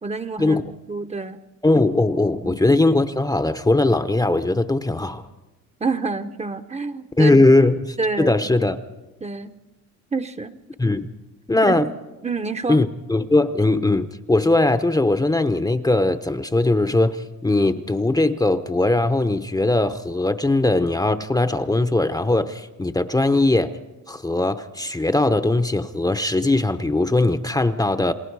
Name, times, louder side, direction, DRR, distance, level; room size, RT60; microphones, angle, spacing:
voice 1, 0.0-1.4 2.4-2.6 5.8-7.4 8.0-8.3 9.2-9.5 10.1-10.5 11.6-11.9 12.2-12.8, right 4 dB, 20° right, 11 dB, 0.9 m, -27 dB
voice 2, 1.6-5.2 7.2-8.8 10.8-11.1 11.5-11.9 12.7-23.7 24.1-28.1, left 2 dB, 10° left, 10 dB, 0.8 m, -20 dB
29.0 x 19.5 x 4.8 m, 1.1 s
cardioid pair, 90°, 30 cm